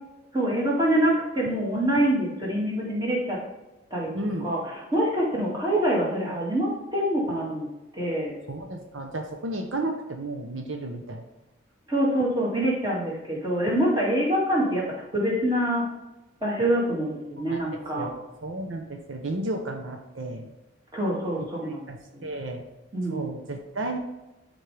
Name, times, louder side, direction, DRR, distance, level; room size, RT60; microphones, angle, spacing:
voice 1, 0.3-3.4 3.9-4.1 4.4-4.6 4.9-7.7 7.9-8.4 11.9-14.9 15.1-15.8 16.4-18.1 20.9-21.9 22.1-22.3 22.9-23.3, right 1 dB, 20° right, -5 dB, 2.3 m, -25 dB
voice 2, 4.1-4.5 5.4-5.5 8.5-11.2 17.4-17.6 17.9-20.5 21.4-21.5 21.9-22.6 23.1-24.0, right 2 dB, 75° right, 3 dB, 0.9 m, -33 dB
12.5 x 4.5 x 3.4 m, 1.0 s
head